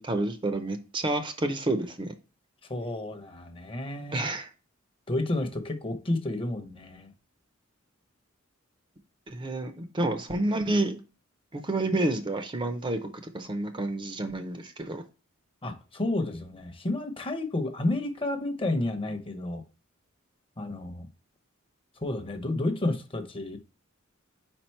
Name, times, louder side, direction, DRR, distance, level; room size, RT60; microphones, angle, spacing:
voice 1, 0.0-2.1 4.1-4.5 9.3-11.0 11.5-13.1 13.3-15.0, right 2 dB, 25° right, 0.6 m, -29 dB
voice 2, 2.7-4.3 5.1-7.1 15.6-19.6 20.6-21.1 22.0-23.6, left 2 dB, 25° left, 0.7 m, -31 dB
4.8 x 4.4 x 4.5 m
head